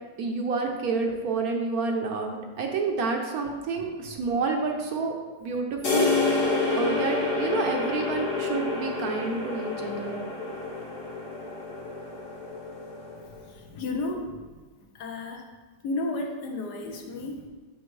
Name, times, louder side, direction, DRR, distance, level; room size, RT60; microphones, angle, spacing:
voice 1, 0.2-6.4 6.7-10.1, right 4 dB, 65° right, 2 dB, 1.1 m, -29 dB
sound 1, 5.8-13.4, left 3 dB, 85° left, 2.1 m, -28 dB
voice 2, 13.2-14.6 14.9-15.5 15.8-17.5, left 2 dB, 70° left, 2 dB, 1.4 m, -33 dB
6.8 x 6.2 x 3.2 m, 1.4 s
omnidirectional pair, 1.8 m